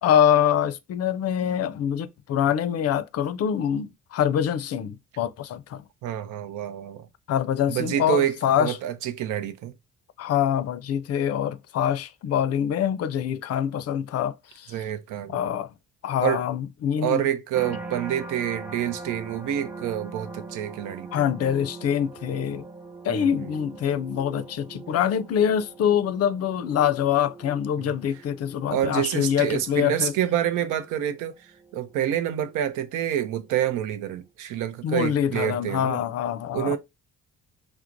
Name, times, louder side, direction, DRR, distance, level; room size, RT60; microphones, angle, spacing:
voice 1, 0.0-5.8 7.3-8.7 10.2-14.7 15.3-15.7 16.0-17.2 21.1-22.6 23.0-30.1 34.8-36.8, left 9 dB, 55° left, 0.4 m, -25 dB
voice 2, 6.0-7.1 7.7-9.7 14.7-15.4 16.2-16.4 17.0-21.2 23.1-23.5 27.8-27.9 28.7-31.3 31.7-36.0 36.5-36.8, right 10 dB, 85° right, 0.5 m, -27 dB
sound 1, 17.5-32.7 33.2-33.7, right 3 dB, 5° right, 0.4 m, -42 dB
4.4 x 2.0 x 2.5 m
cardioid pair, 90°, 30 cm